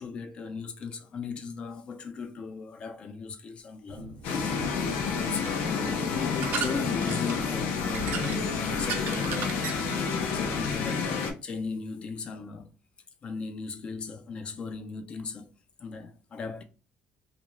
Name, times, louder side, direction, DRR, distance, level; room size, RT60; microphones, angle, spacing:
voice 1, 0.0-5.6 6.1-9.7 10.0-12.7 13.2-15.5 15.8-16.6, left 5 dB, 30° left, 0.3 m, -37 dB
sound 1, 3.9-10.8, right 6 dB, 60° right, 0.5 m, -38 dB
sound 2, 4.2-11.3, left 5 dB, 80° left, 0.6 m, -29 dB
2.5 x 2.2 x 2.9 m
cardioid pair, 165°, 3 cm